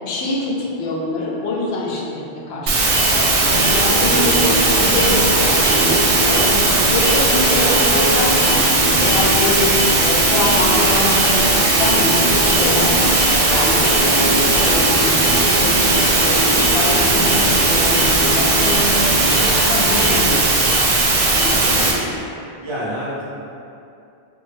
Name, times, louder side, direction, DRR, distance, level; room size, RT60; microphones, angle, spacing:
voice 1, 0.0-8.6 9.0-9.7 10.0-13.2 13.5-18.9 19.6-20.5 21.3-22.1, left 2 dB, 80° left, -3 dB, 0.8 m, -25 dB
sound 1, 2.7-21.9, right 2 dB, 70° right, 0.8 m, -17 dB
sound 2, 3.4-20.2, equal, 35° left, 0.5 m, -24 dB
voice 2, 4.1-4.5 21.5-21.8 22.6-23.2, equal, 35° right, -8 dB, 0.5 m, -29 dB
3.4 x 2.1 x 3.2 m, 2.6 s
omnidirectional pair, 1.1 m